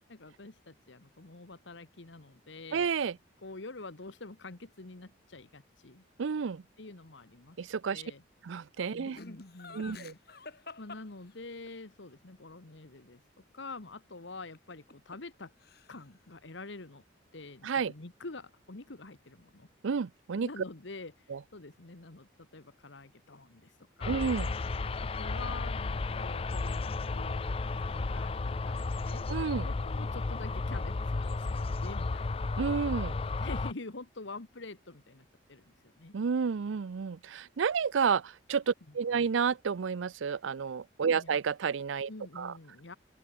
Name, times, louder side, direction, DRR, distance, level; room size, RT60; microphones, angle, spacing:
voice 1, 0.0-2.9 3.4-6.0 6.8-8.2 8.9-13.2 13.5-15.5 15.9-17.0 17.3-19.7 20.4-24.3 25.0-29.3 29.6-32.5 33.4-36.1 39.1-39.3 41.1-41.4 42.1-43.0, left 3 dB, 70° left, 1.4 m, -47 dB
voice 2, 2.7-3.2 6.2-6.6 7.6-8.0 8.4-9.2 9.7-10.1 17.6-17.9 19.8-20.5 21.3-21.4 24.1-24.5 29.3-29.7 32.6-33.2 36.1-42.1 42.4-42.5, right 6 dB, 75° right, 0.5 m, -30 dB
Laughter, 9.1-11.8 14.5-15.4 15.6-16.2, left 3 dB, 50° left, 2.9 m, -48 dB
sound 1, 24.0-33.7, left 3 dB, 30° left, 0.4 m, -33 dB
open air
head